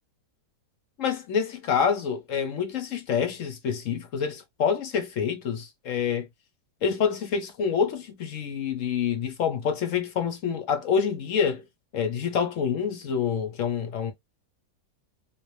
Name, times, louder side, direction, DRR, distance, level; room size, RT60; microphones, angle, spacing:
voice 1, 1.0-6.3 6.8-11.6 11.9-14.1, left 7 dB, 60° left, 0.9 m, -27 dB
3.2 x 2.6 x 3.0 m
omnidirectional pair, 1.8 m